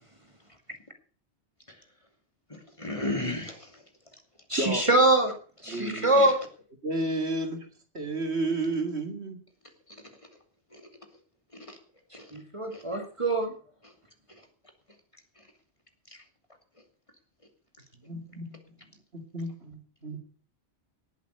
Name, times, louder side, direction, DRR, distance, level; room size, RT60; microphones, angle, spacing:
voice 1, 2.5-3.9 5.7-6.3 9.9-10.1 10.7-10.9 11.5-11.8 12.1-12.3 12.7-12.8 13.8-13.9 14.3-14.5 15.4-15.5 16.1-16.2, left 2 dB, 30° left, 4 dB, 2.9 m, -37 dB
voice 2, 4.5-5.3 5.6-6.4 12.3-13.5, right 2 dB, 25° right, 5 dB, 1.9 m, -23 dB
voice 3, 5.7-6.3 6.8-7.7 7.9-9.4 18.0-18.6 19.1-20.2, right 2 dB, 70° right, 5 dB, 2.7 m, -32 dB
19.0 x 8.3 x 6.7 m, 0.42 s
omnidirectional pair, 1.1 m